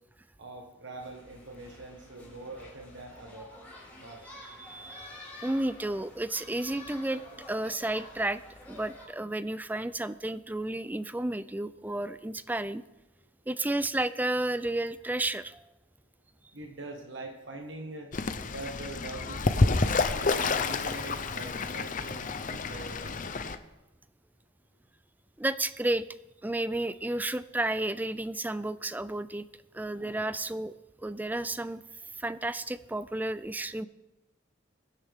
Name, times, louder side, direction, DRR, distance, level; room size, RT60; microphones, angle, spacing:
voice 1, 0.4-3.5 4.0-4.2 16.5-18.1 18.4-23.1, right 2 dB, 65° right, 2 dB, 1.6 m, -44 dB
sound 1, 1.0-9.0, left 1 dB, 10° left, 5.0 m, -49 dB
voice 2, 4.4-7.2 7.5-8.4 8.7-12.8 13.5-15.6 25.4-26.0 26.4-29.5 29.7-30.7 31.0-31.8 32.2-33.9, right 1 dB, 10° right, 14 dB, 0.4 m, -32 dB
Fowl / Bird, 18.1-23.6, left 3 dB, 40° left, 0.7 m, -29 dB
22.5 x 10.0 x 3.6 m, 1.0 s
head